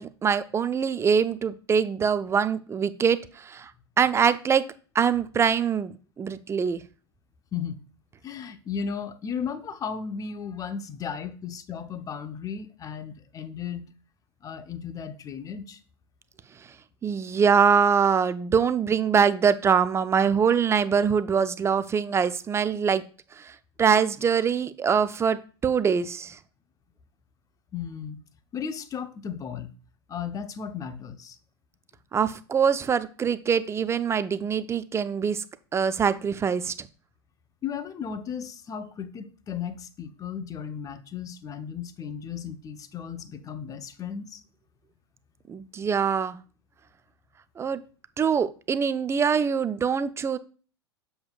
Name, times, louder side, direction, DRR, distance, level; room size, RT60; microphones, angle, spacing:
voice 1, 0.0-3.7 4.0-4.7 4.9-6.8 17.0-23.0 23.4-26.4 32.1-35.4 35.7-36.9 45.5-46.4 47.6-47.8 48.2-50.4, right 6 dB, 20° right, 0.5 m, -24 dB
voice 2, 8.2-13.9 14.4-15.8 27.7-28.2 28.5-29.7 30.1-31.4 37.6-44.4, left 7 dB, 25° left, 0.9 m, -35 dB
7.8 x 6.7 x 2.4 m
figure-of-eight pair, 90°, 14 cm